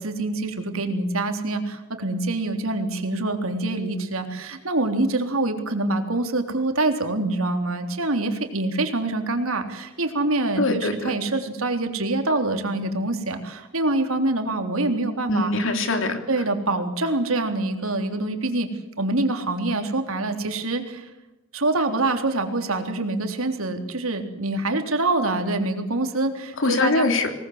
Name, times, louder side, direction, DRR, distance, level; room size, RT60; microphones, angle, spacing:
voice 1, 0.0-15.5 16.3-18.7 19.0-21.1 21.5-27.1, right 2 dB, 75° right, 5 dB, 3.6 m, -25 dB
voice 2, 10.6-11.1 15.3-16.2 26.6-27.3, left 2 dB, 60° left, 6 dB, 3.4 m, -22 dB
25.5 x 19.5 x 8.0 m, 0.98 s
head